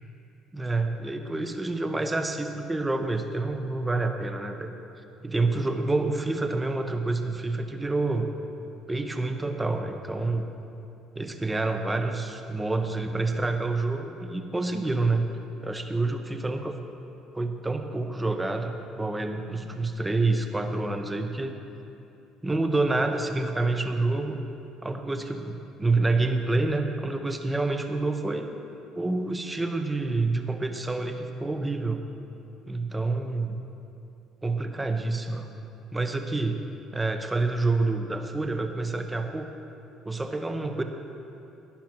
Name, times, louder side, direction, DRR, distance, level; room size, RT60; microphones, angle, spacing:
voice 1, 0.5-4.7 5.2-8.3 8.9-10.5 11.1-15.3 15.6-16.8 17.3-21.5 22.4-24.4 24.8-28.5 28.9-32.0 32.7-33.6 34.4-35.5 35.9-36.6 36.9-39.5 40.0-40.8, right 3 dB, 15° right, 6 dB, 1.0 m, -28 dB
11.5 x 11.5 x 4.5 m, 2.8 s
figure-of-eight pair, 55°, 0 cm